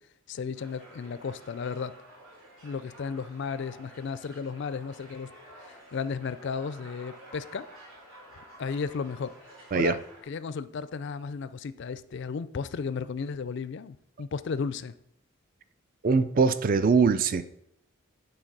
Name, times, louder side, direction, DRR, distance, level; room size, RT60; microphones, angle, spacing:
voice 1, 0.3-1.9 2.6-5.3 5.6-7.7 8.6-10.0 10.3-14.9, left 5 dB, 55° left, 0.4 m, -34 dB
sound 1, 0.5-10.2, right 1 dB, 80° right, 3.1 m, -51 dB
voice 2, 16.0-17.4, right 5 dB, 40° right, 0.3 m, -22 dB
8.8 x 4.0 x 5.3 m
head